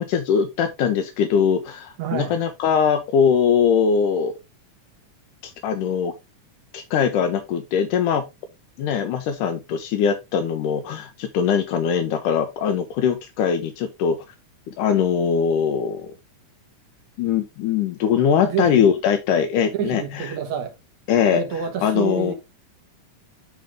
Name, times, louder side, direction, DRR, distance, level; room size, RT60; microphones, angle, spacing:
voice 1, 0.0-4.3 5.4-6.1 6.7-8.2 8.8-14.2 14.7-16.1 17.2-20.4 21.1-21.4 21.8-22.3, left 7 dB, 85° left, 2.5 m, -21 dB
voice 2, 2.0-2.4 18.4-18.8 19.7-20.8 21.3-22.3, right 7 dB, 65° right, 2.7 m, -28 dB
11.0 x 3.9 x 3.5 m
omnidirectional pair, 3.6 m